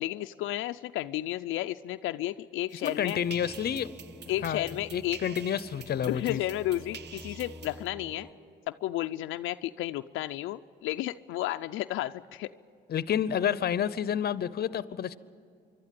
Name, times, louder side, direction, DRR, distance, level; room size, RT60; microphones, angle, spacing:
voice 1, 0.0-3.2 4.3-5.2 6.0-8.3 8.7-12.5, left 15 dB, 90° left, 8 dB, 0.5 m, -32 dB
sound 1, 2.7-7.9, right 8 dB, 60° right, 0.8 m, -48 dB
voice 2, 2.8-3.9 4.4-6.4 12.9-15.2, left 9 dB, 50° left, 17 dB, 0.7 m, -29 dB
sound 2, 3.2-8.3, equal, 5° right, 4.3 m, -48 dB
25.5 x 12.0 x 9.2 m, 2.3 s
cardioid pair, 90°, 20 cm